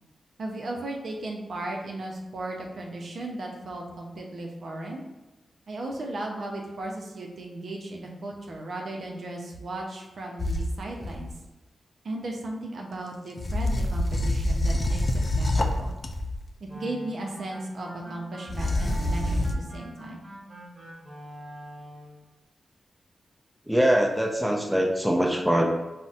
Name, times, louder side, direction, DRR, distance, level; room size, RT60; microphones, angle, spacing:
voice 1, 0.4-5.0 5.7-11.3 12.0-15.9 16.7-20.2, right 2 dB, 70° right, 0 dB, 0.5 m, -36 dB
sound 1, 10.4-11.4 13.4-16.4 18.5-19.5, left 1 dB, 50° left, 0.3 m, -26 dB
sound 2, 16.7-22.2, right 1 dB, 40° right, 1.2 m, -44 dB
voice 2, 23.7-25.6, equal, 5° right, 1 dB, 0.5 m, -23 dB
4.0 x 2.1 x 2.4 m, 1.1 s
cardioid pair, 45°, 0 cm